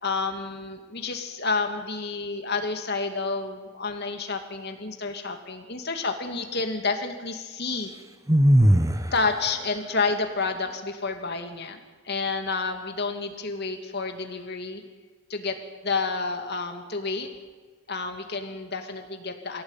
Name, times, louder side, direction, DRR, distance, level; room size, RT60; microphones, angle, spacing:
voice 1, 0.0-7.9 9.1-14.8 15.3-15.6 15.8-17.3 17.9-19.6, left 4 dB, 50° left, 5 dB, 2.5 m, -30 dB
sound 1, 8.3-9.2, equal, 15° right, 1.0 m, -17 dB
23.0 x 16.5 x 9.0 m, 1.4 s
head